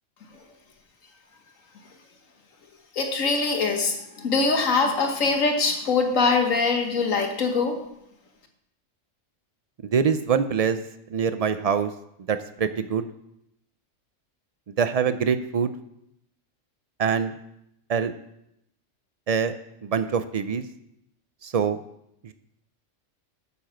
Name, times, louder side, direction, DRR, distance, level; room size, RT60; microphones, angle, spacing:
voice 1, 2.9-7.8, left 4 dB, 90° left, 4 dB, 1.8 m, -23 dB
voice 2, 9.8-10.8 11.1-11.9 12.3-13.1 14.8-15.7 17.0-17.3 17.9-18.1 19.3-19.5 19.8-20.6 21.4-21.8 22.2-22.3, right 6 dB, 60° right, 11 dB, 0.4 m, -24 dB
9.0 x 7.2 x 6.1 m, 0.79 s
omnidirectional pair, 1.3 m